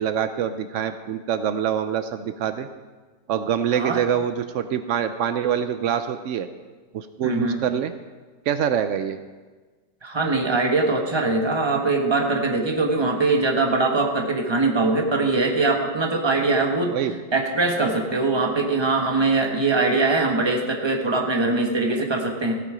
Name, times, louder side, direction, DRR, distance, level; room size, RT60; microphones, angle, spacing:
voice 1, 0.0-2.7 3.3-6.5 6.9-7.9 8.5-9.2 16.7-17.2 22.0-22.1, right 8 dB, 90° right, 10 dB, 0.6 m, -25 dB
voice 2, 7.2-7.6 10.0-17.0 17.3-22.6, right 3 dB, 15° right, 2 dB, 1.1 m, -22 dB
15.5 x 8.3 x 5.0 m, 1.4 s
omnidirectional pair, 1.8 m